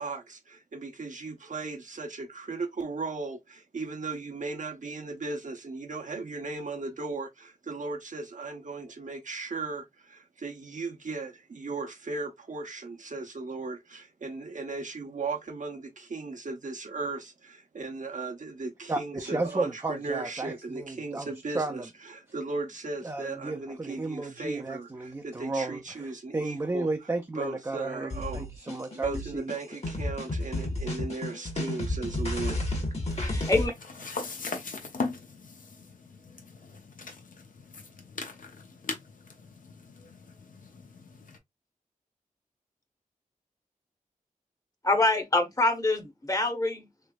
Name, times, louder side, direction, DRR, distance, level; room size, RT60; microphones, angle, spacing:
voice 1, 0.0-21.8 22.3-26.9 27.4-28.4 29.0-32.6, right 3 dB, 65° right, 0.8 m, -36 dB
voice 2, 18.9-21.9 23.0-29.5, right 2 dB, 20° right, 0.4 m, -33 dB
sound 1, 28.1-33.7, left 1 dB, 50° left, 1.2 m, -32 dB
sound 2, 33.1-41.4, left 4 dB, 75° left, 0.7 m, -40 dB
voice 3, 33.2-33.7 44.8-46.0 46.3-46.8, left 2 dB, 25° left, 0.9 m, -25 dB
3.3 x 3.0 x 2.2 m
wide cardioid pair, 80°, 14 cm